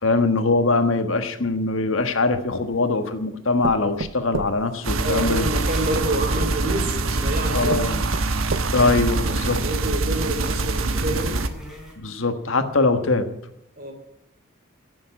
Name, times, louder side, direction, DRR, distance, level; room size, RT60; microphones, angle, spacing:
voice 1, 0.0-5.5 7.5-8.0 8.7-9.6 12.0-13.3, left 3 dB, 75° left, 8 dB, 1.5 m, -22 dB
sound 1, 2.0-2.9 3.6-5.6 6.6-6.7 7.2-7.3 7.7-9.0 9.5-9.6 10.0-10.1, right 4 dB, 65° right, 0.6 m, -33 dB
sound 2, 4.8-11.5, right 2 dB, 85° right, 1.2 m, -24 dB
voice 2, 5.0-8.0 8.6-8.9 9.2-11.4 13.8-13.9, right 1 dB, 45° right, 4 dB, 3.3 m, -28 dB
sound 3, 5.1-12.0, equal, ahead, 3.8 m, -42 dB
16.0 x 7.3 x 9.7 m, 0.78 s
head